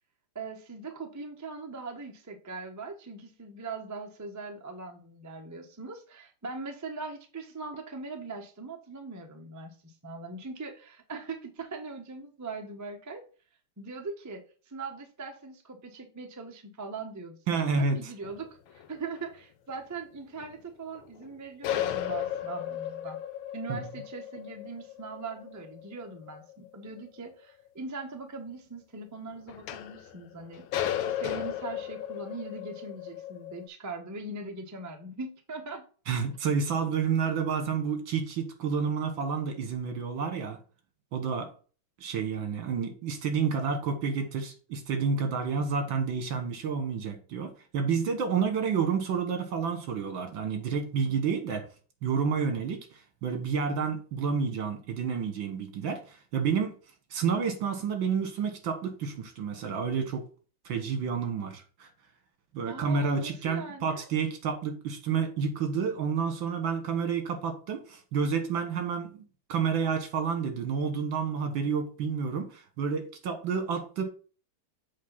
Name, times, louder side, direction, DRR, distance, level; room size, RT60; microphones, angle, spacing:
voice 1, 0.3-13.2 13.8-23.2 23.5-30.7 31.1-35.9 62.7-64.1, right 3 dB, 25° right, 4 dB, 0.3 m, -41 dB
voice 2, 17.5-18.1 23.7-23.8 36.1-40.6 41.1-41.5 42.0-51.7 52.0-56.8 57.1-60.3 60.7-61.9 62.5-69.2 69.5-74.0, right 6 dB, 65° right, 6 dB, 2.1 m, -30 dB
sound 1, 18.2-19.2 19.7-19.8 20.4-20.5 20.9-21.3 21.6-27.1 29.5-33.7, left 11 dB, 75° left, 1.3 m, -35 dB
7.6 x 3.7 x 5.5 m, 0.38 s
omnidirectional pair, 2.3 m